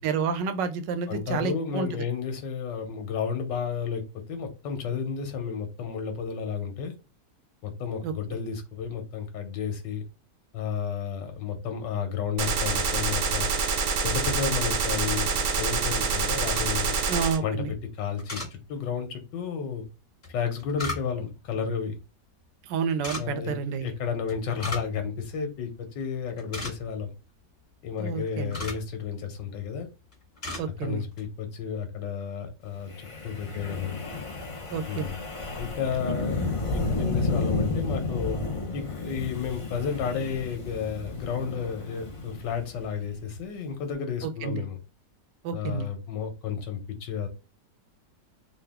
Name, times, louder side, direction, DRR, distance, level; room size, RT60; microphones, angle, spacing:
voice 1, 0.0-2.0 8.0-8.1 17.1-17.7 22.6-23.9 28.0-28.5 30.6-31.0 34.7-35.1 44.2-44.6 45.4-45.9, right 6 dB, 85° right, 1.3 m, -30 dB
voice 2, 1.1-6.9 7.6-10.0 10.5-13.5 14.0-17.0 17.4-19.8 20.3-22.0 23.1-27.1 27.8-29.9 30.8-34.0 34.9-35.1 35.6-38.4 38.7-44.8 45.5-47.3, left 6 dB, 85° left, 1.6 m, -32 dB
Gunshot gunfire, 12.4-17.4, right 4 dB, 65° right, 0.8 m, -26 dB
sound 1, 16.5-17.0 18.2-18.5 20.2-21.4 22.9-23.2 24.3-25.0 25.3-25.4 25.9-26.0 26.3-27.1 28.0-28.9 29.6-29.9 30.1-30.7 31.0-31.3, left 2 dB, 25° left, 1.5 m, -36 dB
Wind, 32.9-43.2, left 3 dB, 50° left, 0.3 m, -32 dB
3.8 x 2.3 x 3.4 m
omnidirectional pair, 1.9 m